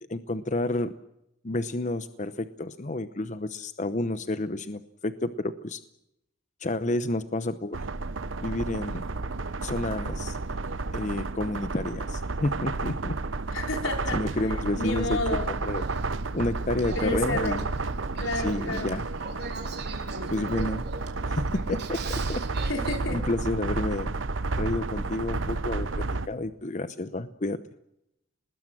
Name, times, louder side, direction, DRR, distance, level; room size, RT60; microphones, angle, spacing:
voice 1, 0.1-0.9 1.4-5.8 6.6-7.8 8.4-9.0 9.6-10.4 10.9-13.2 14.1-15.8 16.3-17.6 18.4-19.1 20.3-20.8 21.3-22.4 23.1-24.1 24.6-27.6, left 2 dB, 40° left, 12 dB, 0.9 m, -30 dB
sound 1, 7.7-26.3, right 3 dB, 80° right, 0.9 m, -31 dB
voice 2, 13.5-15.5 17.0-17.6 18.2-18.9 22.6-23.2, left 2 dB, 90° left, 4 dB, 4.0 m, -31 dB
Male speech man speaking / Female speech woman speaking / Conversation, 15.3-23.0, right 4 dB, 55° right, 3.7 m, -42 dB
23.0 x 20.5 x 7.6 m, 0.81 s
head